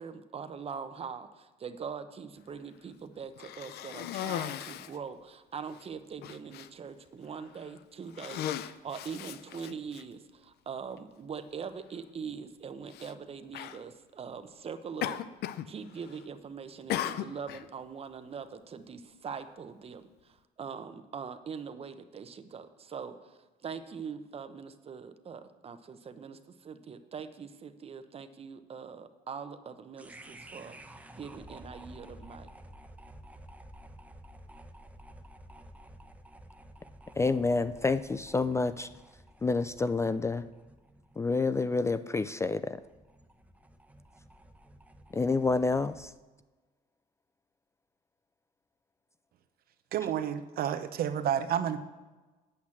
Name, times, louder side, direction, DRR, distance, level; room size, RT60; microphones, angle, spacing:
voice 1, 0.0-15.2 15.7-32.5, right 6 dB, 35° right, 10 dB, 0.9 m, -42 dB
Cough, 3.4-5.0 5.7-5.8 6.2-6.7 7.4-7.7 8.1-10.0 11.0-11.1 12.9-13.1 13.5-13.8 15.0-15.7 16.0-16.4 16.9-17.6, left 11 dB, 70° left, 0.6 m, -37 dB
sound 1, 30.0-46.2, right 1 dB, 10° right, 0.8 m, -52 dB
voice 2, 37.2-38.9 39.4-40.5 41.2-42.8 45.1-46.1, left 3 dB, 15° left, 14 dB, 0.3 m, -28 dB
voice 3, 49.9-51.8, right 9 dB, 65° right, 11 dB, 0.8 m, -30 dB
8.6 x 8.1 x 7.3 m, 1.2 s
cardioid pair, 110°, 17 cm